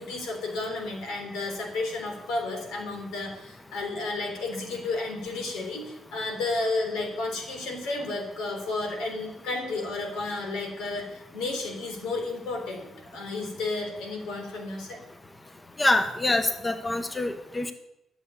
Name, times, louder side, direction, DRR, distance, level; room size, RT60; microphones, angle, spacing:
voice 1, 0.0-15.0, left 3 dB, 90° left, 3 dB, 3.6 m, -32 dB
voice 2, 15.8-17.7, left 2 dB, 20° left, 8 dB, 1.0 m, -25 dB
12.5 x 6.9 x 8.3 m, 0.83 s
cardioid pair, 90°, 0 cm